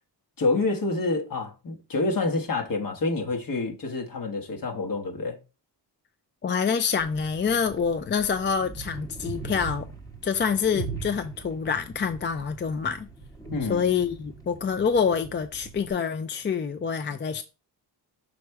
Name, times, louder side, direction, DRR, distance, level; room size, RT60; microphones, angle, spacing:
voice 1, 0.4-5.4 13.5-13.8, left 3 dB, 50° left, 1.4 m, -27 dB
voice 2, 6.4-9.9 10.2-13.1 13.7-17.4, left 6 dB, 30° left, 0.4 m, -26 dB
sound 1, 7.0-15.9, right 5 dB, 10° left, 1.0 m, -41 dB
6.3 x 3.2 x 4.6 m
wide cardioid pair, 120°, 41 cm